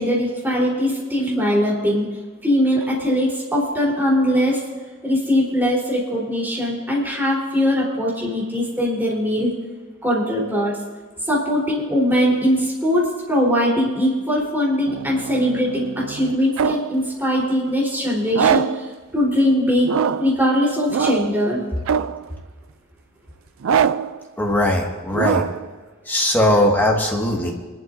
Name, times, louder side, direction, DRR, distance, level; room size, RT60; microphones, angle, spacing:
voice 1, 0.0-2.1 2.4-4.6 5.0-9.5 10.0-10.8 11.3-19.9 20.2-21.6, equal, 10° right, -5 dB, 3.8 m, -21 dB
sound 1, 14.9-17.0 18.3-18.9 19.8-20.4 20.9-21.4 21.9-22.3 23.6-24.2 25.1-25.7, right 7 dB, 75° right, 0.4 m, -23 dB
voice 2, 24.4-25.4 26.1-27.5, left 1 dB, 10° left, -1 dB, 1.8 m, -19 dB
26.0 x 12.0 x 2.7 m, 1.4 s
head